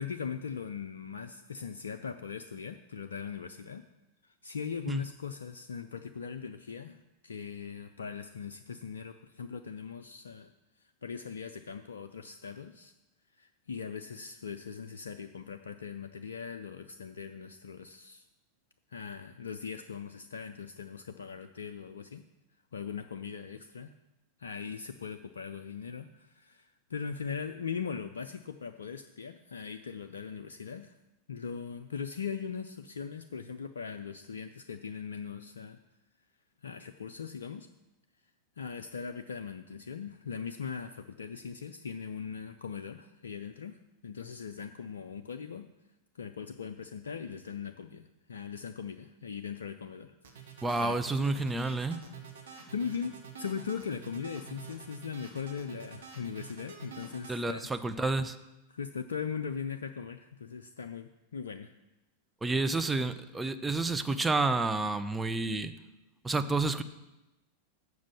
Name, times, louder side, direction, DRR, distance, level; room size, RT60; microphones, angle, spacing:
voice 1, 0.0-3.8 4.2-10.5 10.8-12.9 13.4-18.3 18.9-22.2 22.7-23.9 24.4-31.0 31.3-35.8 36.6-37.7 38.6-43.8 44.0-45.7 46.1-50.1 50.8-51.0 52.5-57.7 58.7-61.7, left 6 dB, 70° left, 8 dB, 0.4 m, -40 dB
sound 1, 50.2-57.4, right 6 dB, 65° right, 1.4 m, -48 dB
voice 2, 50.6-52.0 57.3-58.4 62.4-65.7 66.2-66.8, right 3 dB, 10° right, 9 dB, 0.5 m, -30 dB
7.4 x 6.1 x 7.1 m, 0.98 s
figure-of-eight pair, 90°, 0 cm